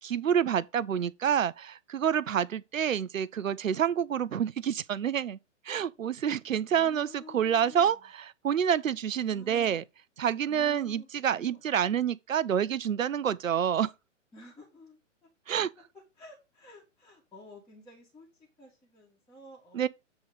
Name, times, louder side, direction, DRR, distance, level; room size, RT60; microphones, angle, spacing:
voice 1, 0.0-5.4 5.6-9.8 10.2-13.9 15.5-15.7 19.7-19.9, right 8 dB, 85° right, 0.6 m, -28 dB
voice 2, 6.7-8.0 9.1-9.9 10.5-11.6 14.3-15.0 16.2-18.3 18.6-19.9, left 2 dB, 10° left, 2.1 m, -51 dB
8.0 x 3.8 x 5.1 m
hypercardioid pair, 130°, 38 cm